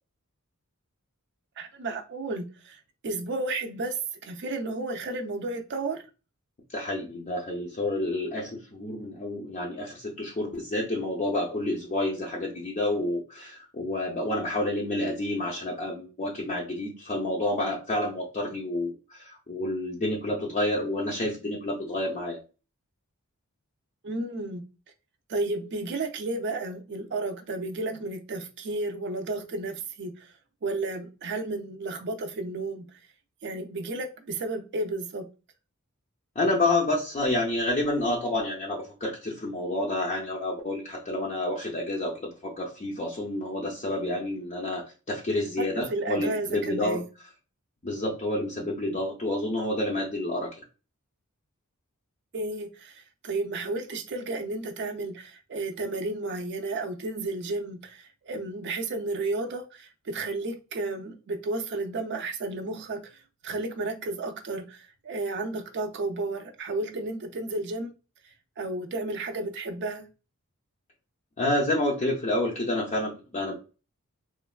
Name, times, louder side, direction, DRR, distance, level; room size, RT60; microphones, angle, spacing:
voice 1, 1.6-6.0 24.0-24.6 25.3-30.3 30.6-33.0 33.4-35.3 45.6-47.0 52.3-67.9 68.6-70.1, right 2 dB, 55° right, 6 dB, 0.5 m, -32 dB
voice 2, 6.7-22.4 36.4-47.0 47.8-50.6 71.4-73.5, left 1 dB, 30° left, -3 dB, 0.5 m, -29 dB
3.1 x 2.2 x 2.2 m, 0.32 s
head